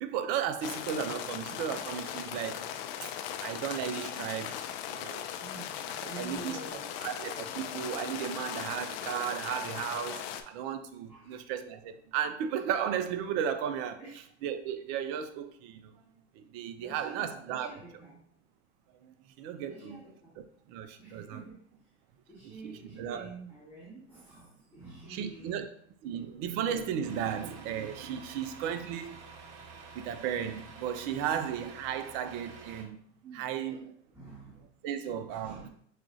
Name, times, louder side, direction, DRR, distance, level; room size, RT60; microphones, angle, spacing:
voice 1, 0.0-2.7 3.0-3.1 3.4-4.6 4.9-5.3 6.0-6.6 7.0-14.0 14.4-15.9 16.3-17.7 19.0-20.0 20.7-21.4 22.4-23.3 25.1-25.7 26.0-29.2 29.9-33.0 33.3-33.9 34.8-35.7, right 8 dB, 40° right, 9 dB, 0.4 m, -35 dB
sound 1, 0.6-10.4, left 10 dB, 55° left, 0.5 m, -38 dB
voice 2, 5.4-7.2 10.9-11.3 14.0-14.3 16.8-18.2 19.6-20.4 21.0-21.8 22.3-25.7 31.2-31.3 33.2-33.5 34.1-34.7 35.3-35.7, right 3 dB, 5° right, -10 dB, 1.3 m, -48 dB
Truck, 27.0-32.8, right 4 dB, 70° right, 0.8 m, -49 dB
5.9 x 2.4 x 2.5 m, 0.64 s
hypercardioid pair, 110°, 37 cm